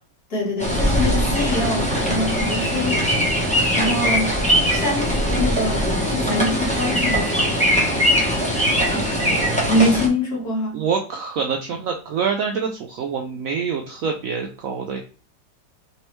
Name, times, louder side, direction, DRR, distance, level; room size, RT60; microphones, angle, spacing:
voice 1, 0.3-3.0 3.7-4.4 4.7-7.6 9.7-10.8, left 1 dB, 60° left, -3 dB, 2.0 m, -24 dB
sound 1, 0.6-10.1, equal, 10° left, 0.3 m, -21 dB
voice 2, 8.4-9.6 10.7-15.0, right 6 dB, 75° right, 3 dB, 0.8 m, -26 dB
3.4 x 3.2 x 3.0 m, 0.38 s
omnidirectional pair, 1.9 m